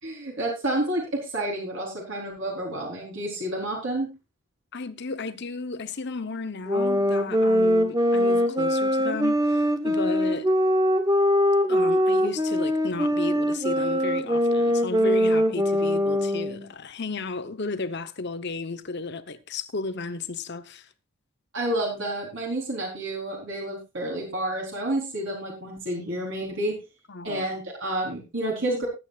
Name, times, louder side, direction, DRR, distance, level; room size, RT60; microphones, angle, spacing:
voice 1, 0.0-4.1 21.5-26.8 27.2-28.9, right 1 dB, 55° right, 4.0 m, -29 dB
voice 2, 4.7-10.5 11.7-20.9 27.1-27.4, left 3 dB, 50° left, 1.0 m, -33 dB
sound 1, 6.7-16.6, equal, 15° right, 1.2 m, -22 dB
19.5 x 9.1 x 2.5 m
head